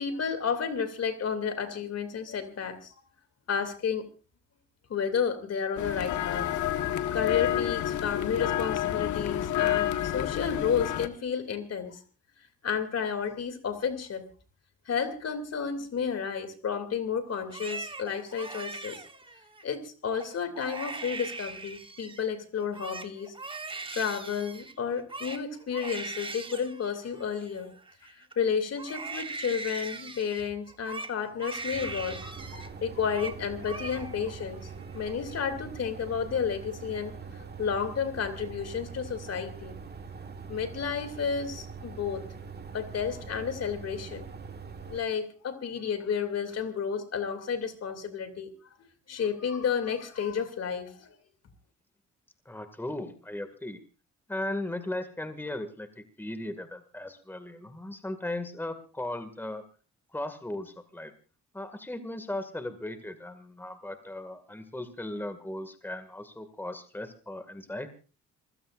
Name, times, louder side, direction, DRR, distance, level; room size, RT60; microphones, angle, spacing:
voice 1, 0.0-2.9 3.5-4.1 4.9-6.5 7.1-12.0 12.6-14.2 14.9-19.0 19.6-23.3 23.9-27.8 28.1-39.7 40.5-42.2 42.7-44.3 44.9-48.5 48.8-51.2, left 6 dB, 55° left, 9 dB, 2.7 m, -32 dB
sound 1, 5.8-11.1, left 11 dB, 75° left, 1.4 m, -29 dB
Crying sobbing, 17.4-19.6 20.1-20.3 20.5-22.3 22.6-28.3 28.8-32.7 33.0-33.4 33.6-34.3 34.7-35.3, right 3 dB, 15° right, 1.2 m, -40 dB
sound 2, 31.7-45.0, right 5 dB, 35° right, 1.8 m, -43 dB
voice 2, 52.5-53.8 54.3-59.6 60.1-61.1 61.5-67.9, left 1 dB, 5° left, 9 dB, 2.1 m, -37 dB
27.0 x 16.0 x 2.5 m, 0.35 s
cardioid pair, 90°, 30 cm